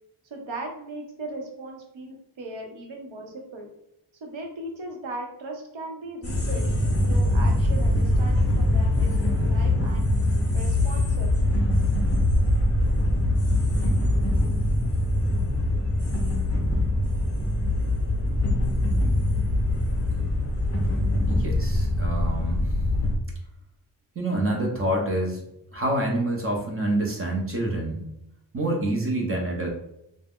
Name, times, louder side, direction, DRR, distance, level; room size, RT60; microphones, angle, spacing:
voice 1, 0.3-3.7 4.2-10.1 10.5-11.4, right 2 dB, 70° right, 2 dB, 0.8 m, -38 dB
sound 1, 6.2-23.2, left 1 dB, 30° left, 0.6 m, -23 dB
voice 2, 21.3-22.7 24.2-25.4 25.7-28.1 28.5-29.7, right 1 dB, 30° right, 0 dB, 0.5 m, -27 dB
2.4 x 2.0 x 3.4 m, 0.83 s
wide cardioid pair, 170°, 47 cm